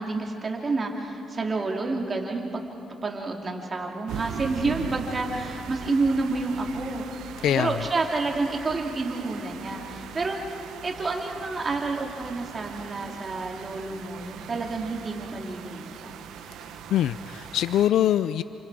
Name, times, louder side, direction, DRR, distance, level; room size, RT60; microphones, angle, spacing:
voice 1, 0.0-2.7 3.0-7.1 7.3-10.4 10.8-16.3, right 3 dB, 35° right, 1 dB, 3.0 m, -29 dB
sound 1, 4.1-17.9, right 8 dB, 85° right, 1.2 m, -40 dB
voice 2, 7.4-7.8 16.9-18.4, left 11 dB, 80° left, 14 dB, 0.4 m, -23 dB
30.0 x 28.5 x 5.0 m, 2.9 s
cardioid pair, 90°, 0 cm